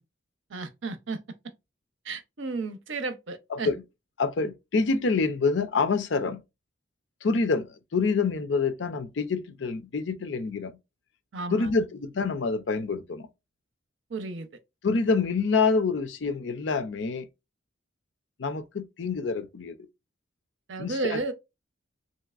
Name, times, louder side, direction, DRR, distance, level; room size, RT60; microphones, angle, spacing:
voice 1, 0.5-1.2 2.0-3.7 11.3-11.7 14.1-14.5 20.7-21.3, right 3 dB, 80° right, 0.7 m, -33 dB
voice 2, 3.5-3.8 4.2-6.4 7.2-10.7 11.5-13.3 14.8-17.3 18.4-19.8 20.8-21.3, left 4 dB, 70° left, 0.5 m, -27 dB
3.2 x 2.8 x 2.4 m
head